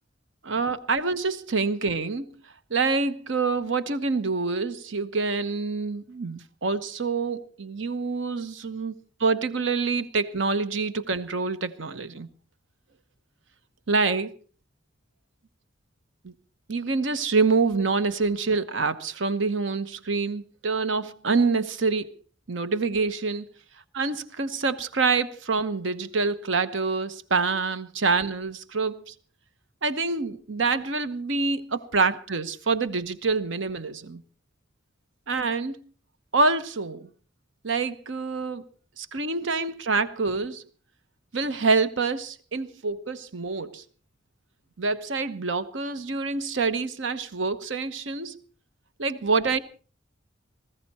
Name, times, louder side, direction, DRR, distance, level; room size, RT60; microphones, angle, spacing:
voice 1, 0.4-2.3 2.7-8.9 9.2-12.3 13.9-14.3 16.2-16.3 16.7-22.1 22.5-23.5 23.9-29.1 29.8-34.2 35.3-35.8 36.3-37.1 37.6-38.7 39.0-40.6 41.3-43.8 44.8-48.4 49.0-49.6, right 4 dB, 75° right, 1.0 m, -26 dB
19.0 x 15.5 x 4.2 m
head